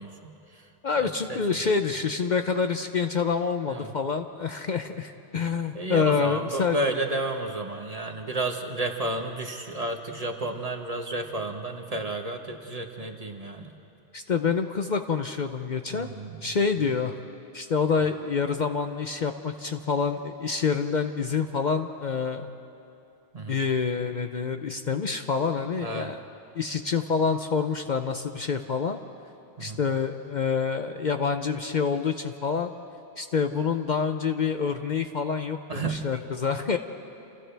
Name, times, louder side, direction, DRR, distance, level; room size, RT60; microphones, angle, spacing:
voice 1, 0.0-0.7 1.0-1.7 3.7-3.9 5.7-13.7 15.9-16.6 23.3-23.6 25.8-26.1 29.6-29.8 35.7-36.0, right 2 dB, 35° right, 3 dB, 1.4 m, -32 dB
voice 2, 0.8-6.8 14.1-16.1 16.4-17.1 17.5-22.5 23.5-26.2 26.5-29.0 29.6-32.7 33.2-36.8, left 5 dB, 50° left, 7 dB, 0.8 m, -27 dB
29.0 x 28.0 x 3.4 m, 2.8 s
omnidirectional pair, 1.1 m